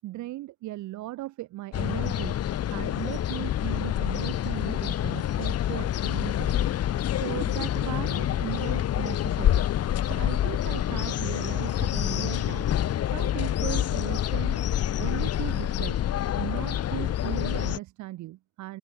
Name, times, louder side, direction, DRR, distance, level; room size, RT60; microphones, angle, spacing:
voice 1, 0.0-2.4 2.7-6.6 7.1-9.6 10.0-12.7 13.1-14.6 15.0-16.0 16.4-18.8, right 16 dB, 50° right, 5.6 m, -37 dB
sound 1, 1.7-17.8, left 11 dB, 40° left, 3.5 m, -27 dB
open air
figure-of-eight pair, 65°, 37 cm